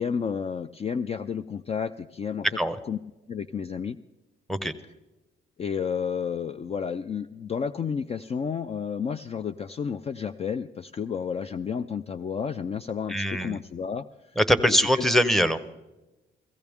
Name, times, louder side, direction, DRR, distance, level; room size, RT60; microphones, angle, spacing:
voice 1, 0.0-2.5 2.8-3.0 3.3-4.0 5.6-14.0 14.7-15.0, left 6 dB, 30° left, 13 dB, 0.4 m, -31 dB
voice 2, 13.1-13.6 14.4-15.6, equal, ahead, 11 dB, 0.8 m, -22 dB
16.5 x 15.5 x 3.6 m, 1.1 s
cardioid pair, 90°, 20 cm